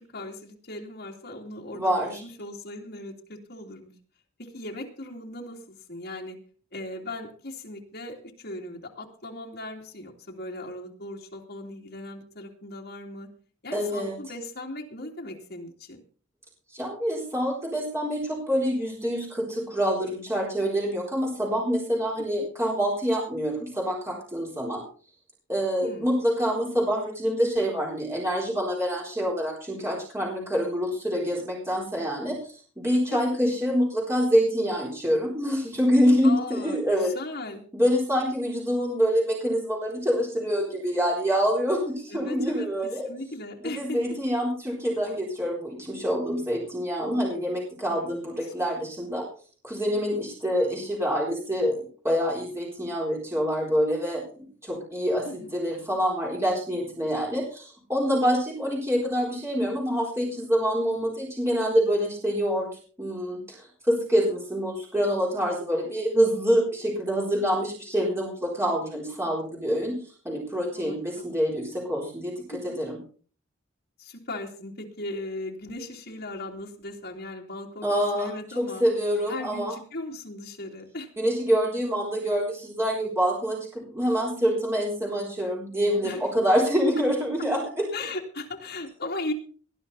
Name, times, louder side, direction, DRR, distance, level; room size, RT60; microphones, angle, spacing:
voice 1, 0.1-3.9 4.4-6.4 6.7-13.3 13.6-16.0 22.4-22.5 25.8-26.1 33.1-33.2 36.2-37.6 42.1-42.7 43.1-44.2 47.9-48.8 55.2-55.5 70.7-71.3 72.5-72.8 74.0-77.9 78.1-78.8 79.3-81.1 86.0-86.2 87.9-89.3, left 2 dB, 50° left, 0 dB, 3.0 m, -38 dB
voice 2, 1.7-2.2 13.7-14.1 16.7-24.8 25.5-37.1 37.7-43.1 43.6-49.2 49.6-54.2 54.6-62.7 63.0-69.9 70.2-73.0 77.8-79.8 81.2-87.9, equal, 15° right, -3 dB, 4.1 m, -26 dB
19.0 x 11.5 x 4.2 m, 0.42 s
head